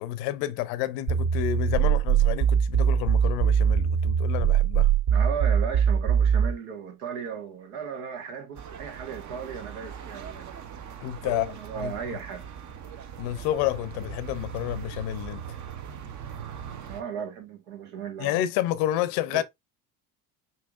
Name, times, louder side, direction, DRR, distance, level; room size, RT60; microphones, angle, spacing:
voice 1, 0.0-4.9 11.0-11.5 11.8-11.9 13.2-15.4 18.2-19.4, left 13 dB, 80° left, 0.7 m, -29 dB
sound 1, 1.1-6.5, right 8 dB, 70° right, 3.2 m, -22 dB
voice 2, 5.1-10.5 11.2-12.4 16.9-18.4 19.3-19.4, right 7 dB, 90° right, 1.6 m, -36 dB
sound 2, 8.6-17.0, right 8 dB, 45° right, 0.8 m, -40 dB
5.6 x 2.8 x 2.5 m
supercardioid pair, 105°, 42 cm